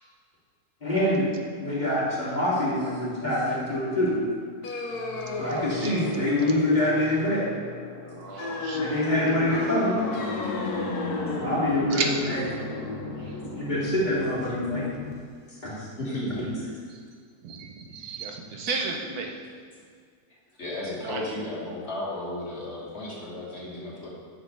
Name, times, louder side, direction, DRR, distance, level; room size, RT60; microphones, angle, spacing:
voice 1, 0.8-1.3 1.6-4.2 5.4-7.5 8.7-9.9 11.4-12.4 13.6-14.8 15.6-15.7 16.4-16.5, left 1 dB, 30° left, -8 dB, 2.6 m, -25 dB
sound 1, 4.6-15.1, left 3 dB, 90° left, 1.5 m, -33 dB
voice 2, 5.3-5.9 8.0-9.0 11.9-12.1 17.4-19.3 21.0-21.2, right 4 dB, 80° right, 2 dB, 1.3 m, -33 dB
voice 3, 16.0-16.7 20.6-24.1, left 1 dB, 45° left, -6 dB, 1.8 m, -34 dB
10.0 x 6.4 x 3.3 m, 2.1 s
omnidirectional pair, 1.6 m